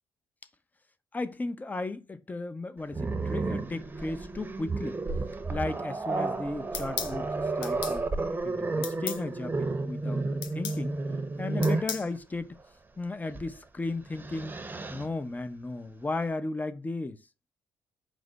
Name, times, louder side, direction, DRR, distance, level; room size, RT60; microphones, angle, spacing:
voice 1, 1.1-5.0 5.5-8.1 8.4-11.0 11.4-12.6 13.0-14.6 14.9-17.2, left 3 dB, 20° left, 0.6 m, -35 dB
Growling, 2.9-12.0 13.3-13.5 13.9-15.1, right 3 dB, 25° right, 0.8 m, -32 dB
sound 1, 6.7-7.2 7.6-8.0 8.8-9.2 10.4-10.8 11.6-12.1, left 8 dB, 85° left, 0.6 m, -35 dB
4.8 x 2.1 x 3.9 m
supercardioid pair, 60°, 8 cm